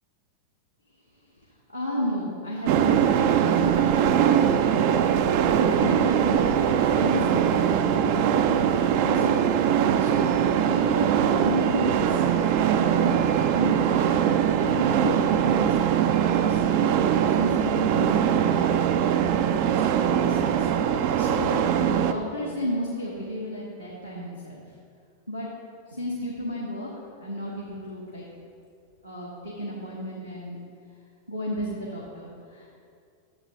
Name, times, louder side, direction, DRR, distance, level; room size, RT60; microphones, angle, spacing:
voice 1, 1.7-5.1 5.6-6.5 6.8-8.3 9.0-12.2 12.7-13.2 13.5-14.1 14.6-16.6 16.9-24.6 25.3-25.5 25.9-26.9 27.2-28.3 29.0-30.6 31.3-32.8, equal, 90° left, -5 dB, 1.0 m, -33 dB
sound 1, 2.6-22.1, right 9 dB, 50° right, 0.4 m, -22 dB
9.4 x 7.4 x 2.7 m, 2.3 s
figure-of-eight pair, 90°, 0 cm